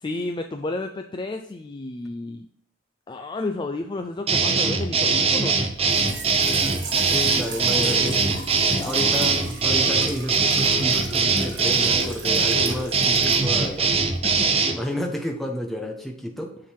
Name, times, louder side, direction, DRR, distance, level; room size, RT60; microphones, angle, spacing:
voice 1, 0.0-2.5 3.1-5.7 7.8-8.4 8.8-9.2 14.2-14.8, left 2 dB, 25° left, 5 dB, 0.4 m, -32 dB
sound 1, 4.3-14.8, right 4 dB, 30° right, 0.7 m, -21 dB
Trickle dribble / Fill (with liquid), 5.7-14.5, right 2 dB, 65° right, 1.4 m, -37 dB
voice 2, 7.0-8.2 8.9-13.9 14.7-16.5, equal, ahead, 1 dB, 1.1 m, -31 dB
7.1 x 3.9 x 4.6 m, 0.74 s
head